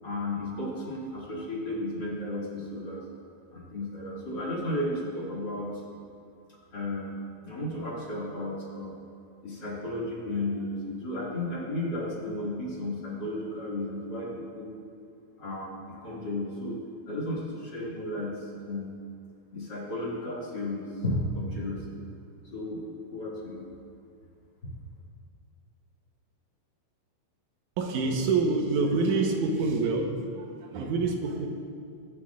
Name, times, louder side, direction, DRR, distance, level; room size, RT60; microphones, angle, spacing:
voice 1, 0.0-3.0 3.5-5.8 6.7-9.0 9.4-14.7 15.4-16.8 17.1-18.9 19.5-22.0 22.5-22.8 23.1-23.6 24.6-24.7, left 1 dB, 40° left, -6 dB, 2.7 m, -34 dB
voice 2, 27.8-31.5, right 3 dB, 85° right, 2 dB, 2.4 m, -27 dB
24.5 x 8.4 x 2.5 m, 2.3 s
omnidirectional pair, 3.5 m